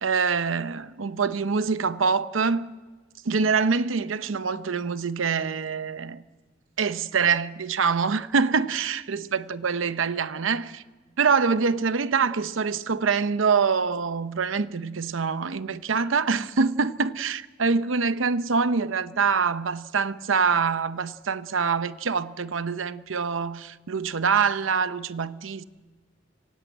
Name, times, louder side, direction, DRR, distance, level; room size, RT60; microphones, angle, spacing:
voice 1, 0.0-2.8 3.3-6.2 6.8-10.8 11.2-25.6, right 5 dB, 85° right, 0.7 m, -25 dB
25.0 x 16.5 x 9.0 m
head